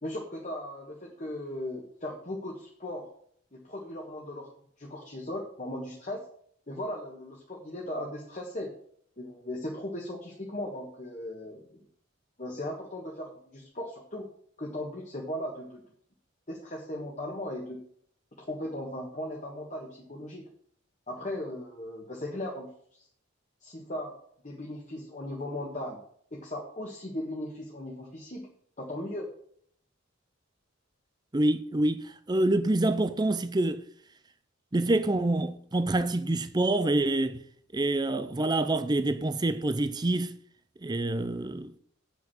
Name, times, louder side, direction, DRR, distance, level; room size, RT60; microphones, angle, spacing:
voice 1, 0.0-3.1 3.5-4.5 4.8-6.2 6.7-8.7 9.2-11.8 12.4-14.2 14.6-15.8 16.5-17.8 18.4-20.4 21.1-23.1 23.6-24.1 24.4-26.0 26.3-28.5 28.8-29.3, left 1 dB, 35° left, 1.5 m, -37 dB
voice 2, 31.3-33.8 34.7-37.4 37.7-40.4 40.8-41.7, right 2 dB, 20° right, 0.5 m, -26 dB
8.1 x 6.0 x 7.1 m
head